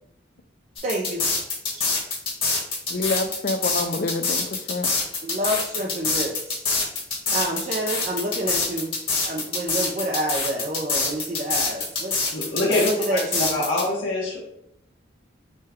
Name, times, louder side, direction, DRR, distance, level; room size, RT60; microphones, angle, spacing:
sound 1, 0.8-13.8, left 3 dB, 30° left, 1.2 m, -25 dB
voice 1, 0.8-1.2 1.7-1.9 5.2-6.7 7.3-8.9 9.3-12.2 12.7-13.5, right 1 dB, 40° right, 0 dB, 0.4 m, -28 dB
voice 2, 2.9-4.9, left 3 dB, 50° left, 9 dB, 0.4 m, -27 dB
voice 3, 12.3-13.2 13.5-14.5, left 2 dB, 75° left, -6 dB, 1.0 m, -24 dB
6.4 x 2.2 x 3.4 m, 0.78 s
head